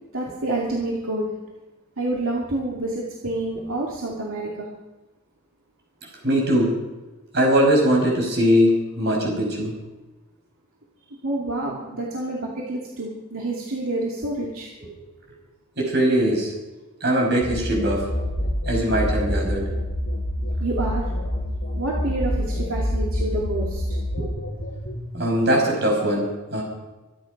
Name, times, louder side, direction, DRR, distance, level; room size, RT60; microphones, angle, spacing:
voice 1, 0.1-1.3 2.0-4.7 11.2-14.7 20.6-21.0 21.7-23.8, right 2 dB, 70° right, -3 dB, 2.6 m, -28 dB
voice 2, 6.2-6.7 7.3-9.7 15.8-16.5 17.0-18.0 18.7-19.6 24.2-24.3 25.1-26.6, equal, 50° right, -1 dB, 6.0 m, -21 dB
sound 1, 17.4-25.0, equal, 50° left, 5.6 m, -27 dB
24.5 x 10.5 x 5.3 m, 1.1 s
head